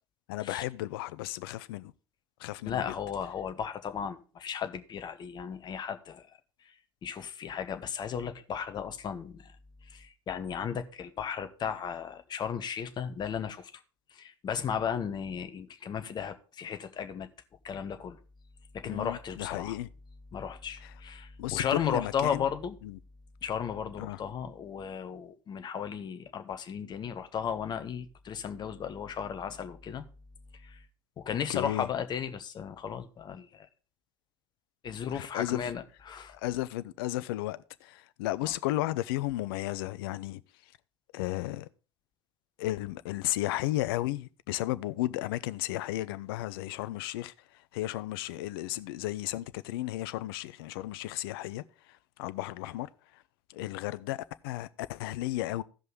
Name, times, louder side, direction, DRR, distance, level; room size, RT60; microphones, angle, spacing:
voice 1, 0.3-1.9 2.4-2.9 18.8-19.9 20.8-20.9 21.4-22.5 22.8-23.0 24.0-24.2 31.3-31.9 35.1-35.6 36.3-40.7 41.1-41.7 42.6-53.2 53.5-55.6, left 16 dB, 55° left, 0.5 m, -34 dB
voice 2, 2.6-6.3 7.0-9.5 9.8-13.7 14.1-17.3 17.6-18.2 18.7-19.7 20.3-22.8 23.4-30.0 30.6-30.8 31.2-33.7 34.8-36.3 38.4-38.5, left 7 dB, 30° left, 1.1 m, -35 dB
15.5 x 5.4 x 3.7 m
figure-of-eight pair, 75°, 14 cm